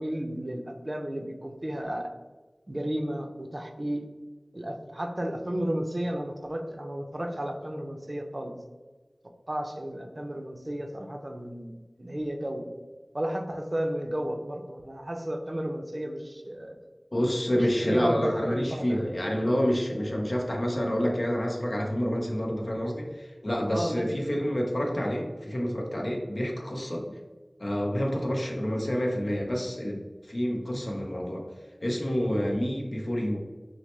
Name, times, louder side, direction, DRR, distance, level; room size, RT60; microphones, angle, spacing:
voice 1, 0.0-2.1 2.7-4.1 4.5-8.5 9.5-11.7 12.0-12.7 13.1-16.8 17.8-19.2 23.7-24.1, right 1 dB, 45° right, 4 dB, 0.5 m, -33 dB
voice 2, 17.1-27.0 27.6-31.5 31.8-33.4, equal, 60° left, 0 dB, 0.9 m, -28 dB
6.1 x 2.1 x 3.2 m, 1.3 s
wide cardioid pair, 45°, 0 cm